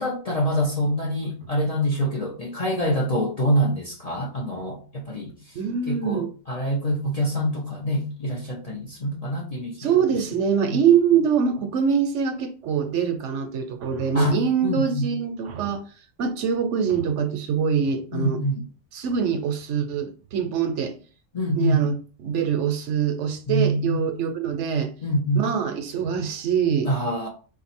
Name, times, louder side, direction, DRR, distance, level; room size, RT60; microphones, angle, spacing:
voice 1, 0.0-5.4 5.9-9.9 10.7-10.8 14.1-15.1 18.1-18.5 21.3-21.8 23.5-24.1 25.0-25.4 26.9-27.3, equal, 40° left, 0.6 m, -25 dB
voice 2, 5.5-6.3 9.8-15.8 16.2-18.4 18.9-21.0 21.5-21.9 22.2-24.9 25.3-26.9, right 7 dB, 70° right, 0.9 m, -24 dB
3.9 x 2.6 x 4.2 m
omnidirectional pair, 1.3 m